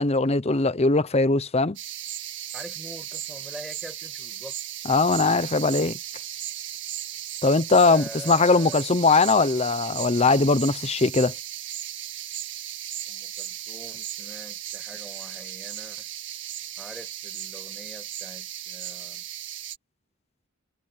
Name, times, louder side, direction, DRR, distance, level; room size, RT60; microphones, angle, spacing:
voice 1, 0.0-1.8 4.9-5.9 7.4-11.3, left 3 dB, 30° left, 0.7 m, -20 dB
sound 1, 1.8-19.8, right 11 dB, 55° right, 2.0 m, -36 dB
voice 2, 2.5-4.6 7.8-8.9 13.1-16.1 16.8-19.3, equal, ahead, 6.7 m, -44 dB
head